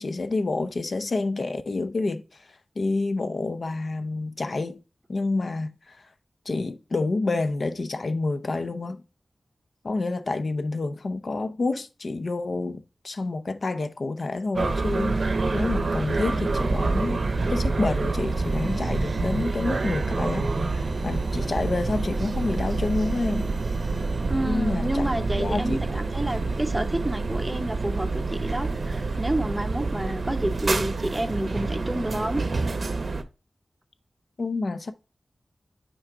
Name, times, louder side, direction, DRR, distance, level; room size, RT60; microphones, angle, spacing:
voice 1, 0.0-2.2 2.8-4.8 5.1-6.1 6.5-9.0 9.8-17.2 17.5-23.5 24.4-25.1 25.4-25.8 34.4-34.9, left 3 dB, 55° left, 0.7 m, -28 dB
sound 1, 14.6-33.2, right 3 dB, 55° right, 0.7 m, -27 dB
voice 2, 24.3-32.4, right 1 dB, 15° right, 0.7 m, -29 dB
6.4 x 4.7 x 3.7 m
wide cardioid pair, 110°, 0 cm